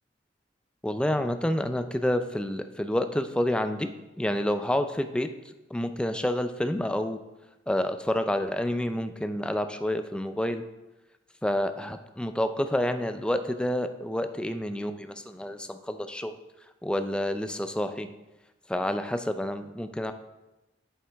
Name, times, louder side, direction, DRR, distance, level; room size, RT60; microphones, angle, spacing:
voice 1, 0.8-3.9 4.2-5.3 5.7-7.2 7.7-10.6 11.4-16.3 16.8-18.1 18.7-20.1, left 1 dB, 5° left, 8 dB, 0.4 m, -28 dB
8.2 x 7.5 x 3.4 m, 1.0 s
head